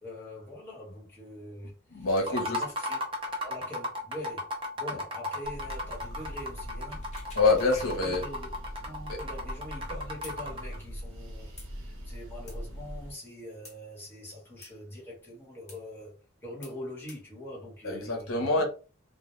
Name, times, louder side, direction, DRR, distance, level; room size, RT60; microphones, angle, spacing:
voice 1, 0.0-4.5 4.8-7.0 7.7-8.5 8.8-18.5, left 1 dB, 10° left, 1.1 m, -43 dB
voice 2, 1.9-2.6 7.3-8.2 9.1-9.2 17.8-18.6, left 3 dB, 80° left, 0.7 m, -26 dB
sound 1, 2.2-10.8, left 1 dB, 25° right, 0.5 m, -35 dB
sound 2, 5.4-13.1, equal, 75° right, 0.7 m, -41 dB
sound 3, 6.9-8.0 8.3-8.4 10.2-10.4 11.6-11.7 12.5-12.6 13.6-13.8 14.6-14.7 15.7-15.8 16.6-16.8 17.1-17.2, left 3 dB, 35° left, 0.8 m, -49 dB
2.2 x 2.1 x 3.0 m
head